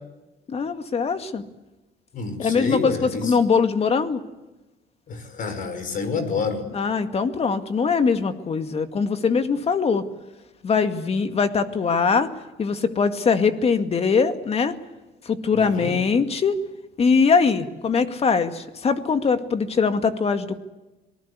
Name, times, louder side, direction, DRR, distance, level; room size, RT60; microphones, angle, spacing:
voice 1, 0.5-1.4 2.4-4.2 6.7-10.0 10.6-12.3 12.6-14.7 15.2-16.6 17.0-20.6, left 5 dB, 35° left, 9 dB, 2.1 m, -22 dB
voice 2, 2.1-3.3 5.1-6.6 15.5-15.9, left 4 dB, 55° left, 10 dB, 5.6 m, -28 dB
26.0 x 19.5 x 8.3 m, 1.1 s
cardioid pair, 110°, 17 cm